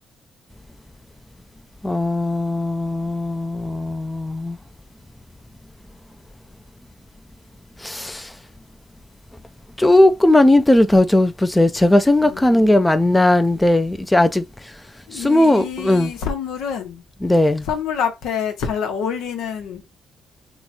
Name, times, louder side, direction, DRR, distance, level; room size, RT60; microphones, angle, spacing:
voice 1, 1.8-4.6 7.8-8.3 9.8-14.4 15.1-16.1 17.2-17.7, left 1 dB, 10° left, 0.4 m, -17 dB
voice 2, 12.2-12.9 15.1-17.0 17.6-19.8, left 7 dB, 85° left, 0.9 m, -27 dB
2.9 x 2.3 x 4.1 m
cardioid pair, 90°, 0 cm